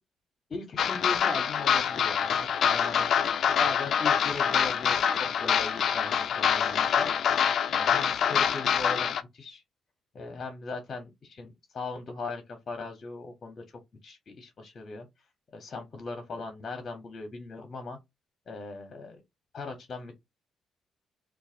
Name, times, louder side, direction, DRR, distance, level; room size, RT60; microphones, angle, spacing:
voice 1, 0.5-3.1 3.6-7.1 7.7-9.6 10.1-15.1 15.5-18.0 18.5-19.2 19.5-20.1, left 3 dB, 45° left, 0.9 m, -39 dB
sound 1, 0.8-9.2, left 8 dB, 65° left, 0.4 m, -25 dB
4.1 x 2.4 x 2.4 m
cardioid pair, 90°, 0 cm